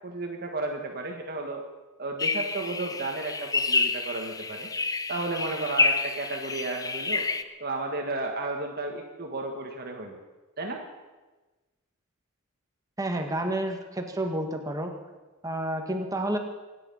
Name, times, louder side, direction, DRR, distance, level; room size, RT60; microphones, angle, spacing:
voice 1, 0.0-1.6 2.0-4.7 5.1-7.3 7.6-10.2 10.6-10.8, right 2 dB, 45° right, 2 dB, 1.7 m, -33 dB
sound 1, 2.2-7.4, left 3 dB, 15° left, 0.6 m, -28 dB
voice 2, 13.0-14.9 15.4-16.4, right 1 dB, 15° right, 4 dB, 1.8 m, -30 dB
25.5 x 10.0 x 5.6 m, 1.2 s
head